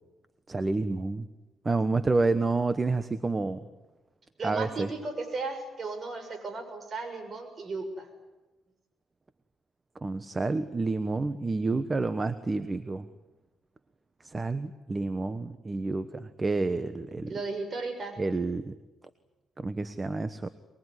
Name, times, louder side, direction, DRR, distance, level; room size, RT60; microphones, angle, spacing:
voice 1, 0.5-1.3 1.6-3.7 4.4-4.9 10.0-13.1 14.2-17.3 18.2-18.7 19.6-20.5, right 3 dB, 25° right, 12 dB, 1.2 m, -29 dB
voice 2, 4.4-8.1 17.3-18.2, right 3 dB, 45° right, 7 dB, 6.7 m, -35 dB
24.0 x 22.0 x 9.8 m, 1.1 s
cardioid pair, 90°, 0 cm